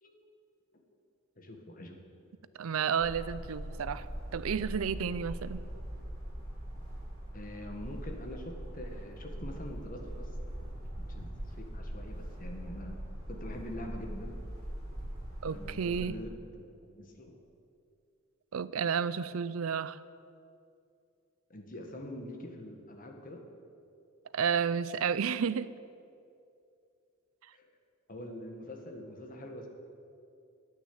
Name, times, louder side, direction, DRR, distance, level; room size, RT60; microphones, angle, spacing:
voice 1, 1.4-1.9 7.3-10.3 11.1-12.9 13.3-14.4 15.4-17.4 21.5-23.4 27.5-27.7 28.1-29.7, left 1 dB, 40° left, 3 dB, 1.6 m, -44 dB
voice 2, 2.6-4.1 4.3-5.6 15.4-16.2 18.5-20.0 24.3-25.7, right 7 dB, 80° right, 16 dB, 0.5 m, -31 dB
sound 1, 3.0-16.2, equal, 40° right, 3.7 m, -41 dB
10.5 x 8.8 x 8.6 m, 2.5 s
head